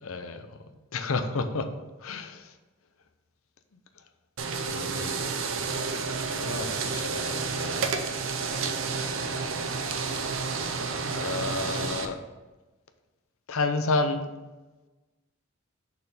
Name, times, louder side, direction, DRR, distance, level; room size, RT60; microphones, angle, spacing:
voice 1, 0.0-0.5 0.9-1.7 2.0-2.5 4.6-5.2 6.3-8.1 11.1-12.2 13.5-14.2, left 3 dB, 80° left, 8 dB, 0.7 m, -31 dB
sound 1, 4.4-12.1, right 4 dB, 70° right, 0.7 m, -30 dB
6.7 x 4.4 x 5.3 m, 1.2 s
head